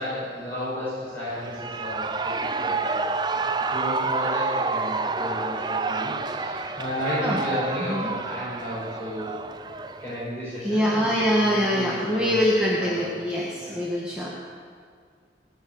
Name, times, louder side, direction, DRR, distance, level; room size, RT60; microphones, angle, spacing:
voice 1, 0.0-2.4 2.6-3.0 3.3-9.3 10.0-12.3 12.8-13.1 13.6-14.1, left 1 dB, 10° left, -11 dB, 5.8 m, -33 dB
Shout / Cheering, 1.3-10.2, right 4 dB, 25° right, 0.5 m, -29 dB
voice 2, 7.8-8.1 10.6-14.3, equal, 5° right, -6 dB, 1.7 m, -24 dB
19.5 x 7.5 x 9.4 m, 2.1 s
head